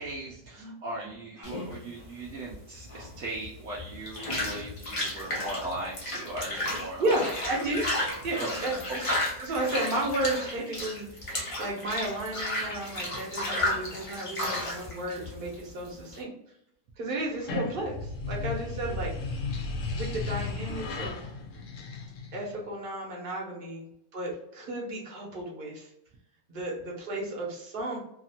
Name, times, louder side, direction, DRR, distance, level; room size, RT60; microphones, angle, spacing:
voice 1, 0.0-7.3 8.4-8.5 8.9-9.0, right 2 dB, 70° right, -4 dB, 0.7 m, -38 dB
voice 2, 0.6-1.1 7.0-7.8 8.2-9.1 9.4-16.3 17.0-19.4 19.9-21.2 22.3-23.8 24.1-25.9 26.5-28.0, right 1 dB, 45° right, -2 dB, 0.8 m, -33 dB
sound 1, 1.4-16.2, left 1 dB, 45° left, 0.4 m, -33 dB
sound 2, 17.3-22.5, left 3 dB, 65° left, 0.8 m, -35 dB
2.8 x 2.5 x 2.7 m, 0.77 s
omnidirectional pair, 1.8 m